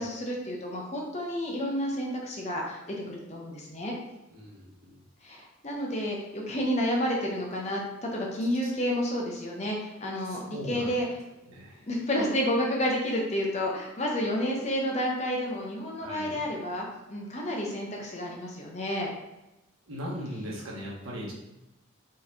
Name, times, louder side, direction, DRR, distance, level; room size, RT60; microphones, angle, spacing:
voice 1, 0.0-2.8 3.1-3.9 5.2-11.1 11.9-19.1, equal, 30° left, -1 dB, 0.6 m, -30 dB
voice 2, 4.3-5.0 8.6-8.7 10.3-11.0 11.5-11.8 16.0-16.3 19.9-21.3, equal, 80° right, -5 dB, 1.2 m, -39 dB
4.0 x 3.1 x 2.7 m, 0.96 s
head